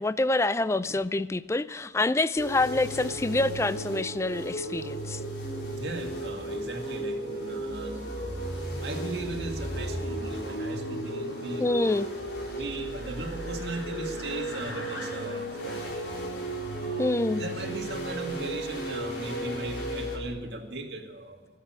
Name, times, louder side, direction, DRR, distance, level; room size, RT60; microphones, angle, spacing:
voice 1, 0.0-5.2 11.6-12.1 17.0-17.4, left 2 dB, 15° left, 0.3 m, -26 dB
sound 1, 2.4-20.2, right 1 dB, 80° left, 3.9 m, -34 dB
voice 2, 5.7-12.0 12.5-16.2 16.7-21.5, right 2 dB, 65° right, 2.1 m, -38 dB
17.5 x 8.2 x 8.7 m
head